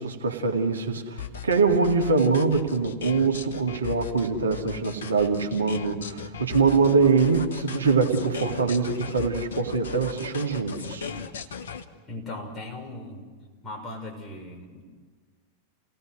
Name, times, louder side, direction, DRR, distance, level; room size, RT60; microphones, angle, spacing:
voice 1, 0.0-11.1, right 4 dB, 70° right, 2 dB, 2.2 m, -23 dB
sound 1, 1.2-11.8, left 6 dB, 65° left, 1.4 m, -37 dB
voice 2, 12.1-13.3 13.6-14.8, left 2 dB, 15° left, -1 dB, 6.2 m, -38 dB
29.5 x 19.0 x 6.3 m, 1.5 s
figure-of-eight pair, 90°, 0 cm